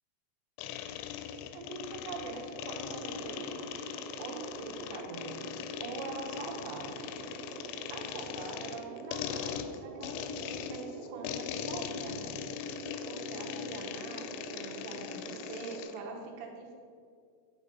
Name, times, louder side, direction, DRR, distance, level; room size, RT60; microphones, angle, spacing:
sound 1, 0.6-16.0, left 9 dB, 90° left, 3.1 m, -40 dB
voice 1, 1.5-5.4 5.8-7.1 7.9-12.3 13.1-16.7, right 4 dB, 70° right, 1 dB, 3.1 m, -43 dB
sound 2, 2.6-15.8, right 5 dB, 90° right, 3.3 m, -46 dB
10.5 x 5.1 x 5.3 m, 2.3 s
omnidirectional pair, 5.5 m